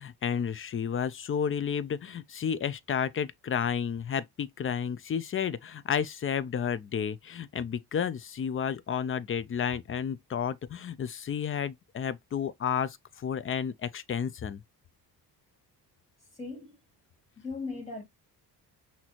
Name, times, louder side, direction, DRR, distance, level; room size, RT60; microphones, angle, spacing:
voice 1, 0.0-14.6, left 7 dB, 35° left, 0.5 m, -31 dB
voice 2, 16.3-16.8 17.4-18.0, left 3 dB, 15° left, 2.6 m, -38 dB
6.0 x 2.8 x 2.9 m
cardioid pair, 110°, 40 cm